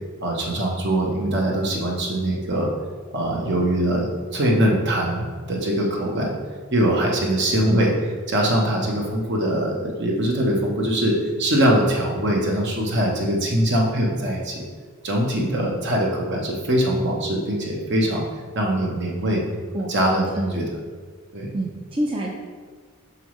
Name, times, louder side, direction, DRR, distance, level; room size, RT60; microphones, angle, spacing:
voice 1, 0.2-2.7 3.1-6.3 6.7-7.9 8.3-14.5 15.0-18.3 18.5-19.4 19.9-20.3 20.5-20.6 21.3-21.5, right 1 dB, 55° right, -1 dB, 1.1 m, -22 dB
voice 2, 21.5-22.3, right 1 dB, 25° right, -2 dB, 0.5 m, -27 dB
6.2 x 5.5 x 3.2 m, 1.5 s
head